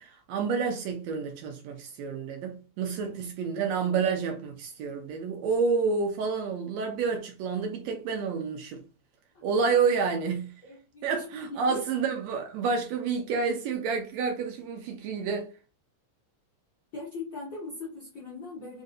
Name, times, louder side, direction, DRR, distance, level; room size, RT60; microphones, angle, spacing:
voice 1, 0.0-8.8 9.4-10.5 11.0-15.5, right 5 dB, 80° right, 1.7 m, -29 dB
voice 2, 10.6-11.2 11.5-11.8 16.9-18.8, left 3 dB, 70° left, 1.1 m, -39 dB
4.6 x 2.6 x 2.5 m
omnidirectional pair, 3.4 m